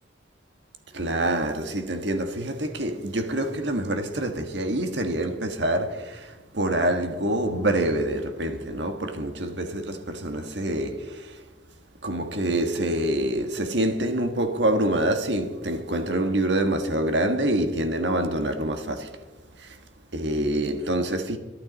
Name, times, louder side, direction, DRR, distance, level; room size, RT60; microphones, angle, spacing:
voice 1, 0.9-11.4 12.0-19.1 19.6-19.8 20.1-21.4, right 1 dB, 70° right, 1.6 m, -26 dB
23.0 x 11.5 x 4.1 m
head